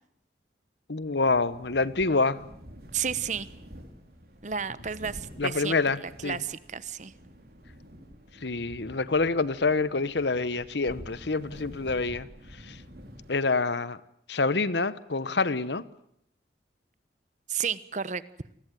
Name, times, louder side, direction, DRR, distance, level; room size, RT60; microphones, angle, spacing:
voice 1, 0.9-2.4 5.4-6.4 8.4-12.3 12.6-12.8 13.3-14.0 14.3-15.8, left 3 dB, 70° left, 17 dB, 1.1 m, -27 dB
sound 1, 1.0-13.7, equal, 55° right, 4.9 m, -48 dB
voice 2, 2.9-3.5 4.4-7.1 17.5-18.2, right 7 dB, 40° right, 16 dB, 1.0 m, -32 dB
29.0 x 20.5 x 9.2 m, 0.74 s
head